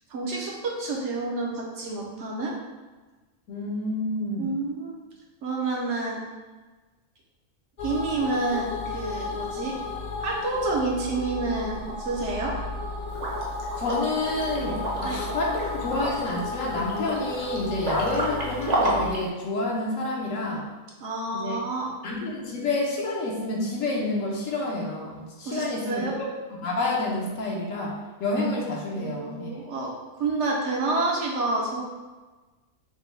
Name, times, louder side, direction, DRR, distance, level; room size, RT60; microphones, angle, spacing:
voice 1, 0.1-2.5 4.4-5.0 5.4-6.2 7.8-9.8 10.2-12.5 15.0-15.2 21.0-21.9 25.5-26.2 29.0-29.9 30.2-31.8, right 3 dB, 65° right, -2 dB, 0.9 m, -29 dB
voice 2, 3.5-4.6 13.8-20.7 21.3-21.6 22.0-29.5, left 2 dB, 70° left, -2 dB, 1.1 m, -29 dB
sound 1, 7.8-19.1, left 3 dB, 45° left, 0.6 m, -34 dB
Liquid, 13.1-19.2, right 1 dB, 40° right, 0.6 m, -31 dB
5.2 x 2.1 x 3.2 m, 1.3 s
omnidirectional pair, 1.4 m